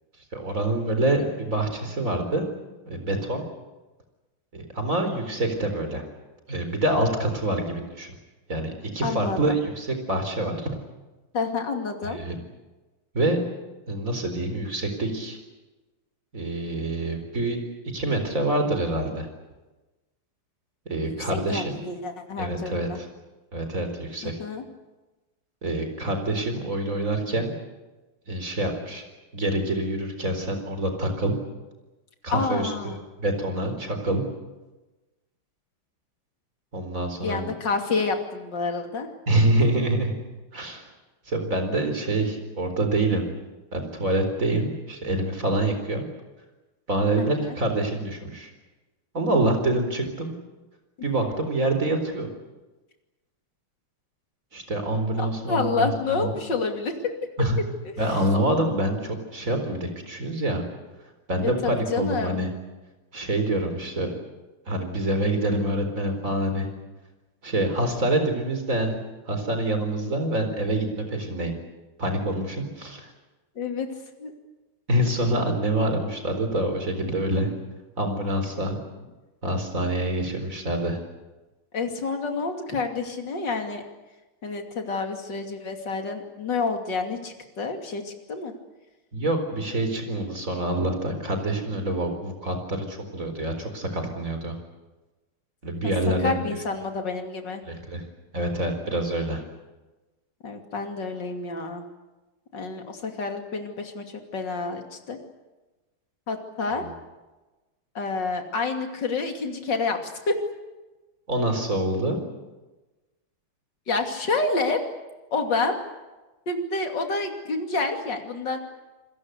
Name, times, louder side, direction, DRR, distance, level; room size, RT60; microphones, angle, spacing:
voice 1, 0.3-2.4 2.9-3.4 4.5-6.0 6.5-8.2 8.5-10.8 12.0-12.4 13.1-13.4 13.9-15.4 16.3-17.6 17.9-19.3 20.9-21.8 22.4-23.1 23.5-24.4 25.6-27.5 28.3-29.0 29.3-31.3 32.2-34.2 36.7-37.5 39.3-40.1 40.5-40.8 41.3-43.3 43.7-46.0 46.9-48.5 49.1-50.3 51.0-52.3 54.5-56.3 57.4-57.6 58.0-60.6 61.3-62.5 63.1-64.2 64.7-66.7 67.4-69.0 69.3-71.5 72.0-73.1 74.9-77.5 78.0-78.8 79.4-81.0 89.1-94.6 95.6-96.4 97.7-98.0 98.3-99.4 106.8-106.9 111.3-112.2, right 1 dB, 35° right, 6 dB, 4.6 m, -26 dB
voice 2, 9.0-9.6 11.3-12.2 21.0-21.1 21.5-23.0 24.2-24.6 32.3-33.0 37.2-39.1 47.2-47.6 55.2-57.1 57.8-57.9 61.4-62.4 73.6-73.9 74.2-74.3 81.7-83.8 84.4-88.5 95.8-95.9 96.2-97.6 100.4-101.8 102.5-105.2 106.3-106.9 108.0-110.3 113.9-114.8 115.3-115.8 116.5-118.6, left 4 dB, 55° left, 4 dB, 3.3 m, -28 dB
28.0 x 21.5 x 8.2 m, 1.1 s
omnidirectional pair, 2.3 m